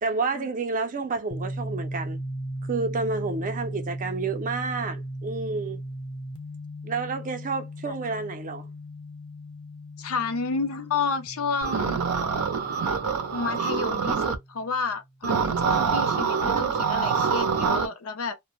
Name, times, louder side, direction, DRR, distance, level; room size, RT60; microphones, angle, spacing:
voice 1, 0.0-2.2 2.7-5.8 6.8-8.7, right 4 dB, 40° right, 0.5 m, -30 dB
sound 1, 1.3-14.9, right 1 dB, 20° left, 0.5 m, -37 dB
voice 2, 10.0-12.0 13.3-18.4, left 4 dB, 75° left, 0.5 m, -30 dB
sound 2, 11.6-14.4 15.2-17.9, right 6 dB, 90° right, 0.5 m, -25 dB
2.1 x 2.0 x 2.9 m
head